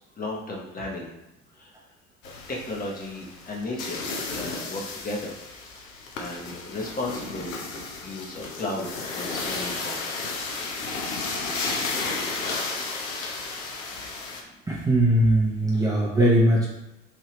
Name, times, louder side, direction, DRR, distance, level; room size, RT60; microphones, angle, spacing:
voice 1, 0.2-1.1 1.6-1.7 2.5-5.3 6.1-7.6 8.0-10.1, left 2 dB, 20° left, -2 dB, 0.8 m, -34 dB
sound 1, 2.2-14.4, left 3 dB, 75° left, 0.7 m, -33 dB
voice 2, 14.7-16.7, right 1 dB, 10° right, -6 dB, 0.7 m, -20 dB
3.3 x 2.7 x 3.0 m, 0.91 s
figure-of-eight pair, 70°, 40 cm